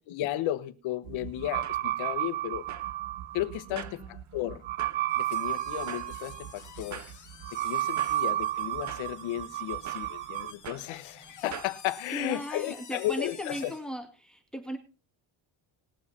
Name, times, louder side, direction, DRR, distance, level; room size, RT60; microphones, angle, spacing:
voice 1, 0.1-2.7 3.3-4.6 5.2-7.0 7.5-13.7, left 14 dB, 85° left, 1.3 m, -34 dB
sound 1, 1.1-10.5, right 14 dB, 75° right, 1.0 m, -33 dB
sound 2, 1.3-11.8, right 8 dB, 40° right, 1.0 m, -47 dB
voice 2, 3.7-4.2 12.1-14.8, equal, ahead, 2.1 m, -37 dB
sound 3, 5.1-13.9, left 7 dB, 40° left, 2.0 m, -51 dB
20.0 x 7.3 x 4.3 m
cardioid pair, 125°, 46 cm